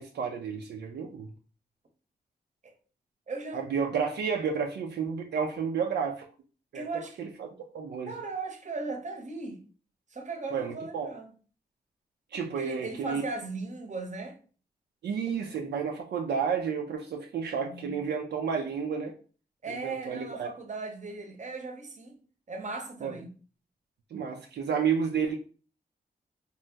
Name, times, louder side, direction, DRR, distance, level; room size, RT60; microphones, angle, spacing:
voice 1, 0.0-1.3 3.5-6.2 6.7-6.8 7.2-7.5 7.7-8.1 10.5-11.1 12.3-13.2 15.0-19.1 19.7-20.5 23.0-23.1 24.1-25.4, right 6 dB, 80° right, 0.4 m, -31 dB
voice 2, 3.3-3.7 6.7-7.2 8.1-9.6 10.1-11.3 12.6-14.4 17.6-18.0 19.6-22.2 22.5-23.3, right 3 dB, 45° right, 0.7 m, -37 dB
2.8 x 2.0 x 3.3 m
cardioid pair, 65°, 17 cm